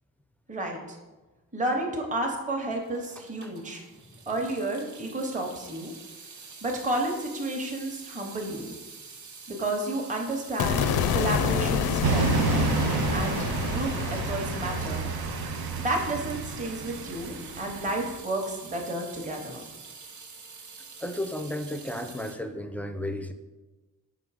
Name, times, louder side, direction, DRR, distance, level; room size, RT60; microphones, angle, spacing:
voice 1, 0.5-1.0 1.5-3.8 4.3-5.9 6.6-8.7 9.5-12.4 13.1-15.1 15.8-19.7, right 1 dB, 20° right, 1 dB, 0.8 m, -31 dB
Water tap faucet / Sink (filling or washing) / Drip, 2.8-22.4, right 5 dB, 55° right, 0.8 m, -46 dB
sound 1, 10.6-16.8, left 6 dB, 75° left, 0.5 m, -29 dB
sound 2, 12.0-18.2, right 6 dB, 90° right, 0.5 m, -30 dB
voice 2, 21.0-23.3, left 1 dB, 5° left, 7 dB, 0.3 m, -33 dB
5.4 x 3.8 x 4.7 m, 1.2 s
wide cardioid pair, 115°, 36 cm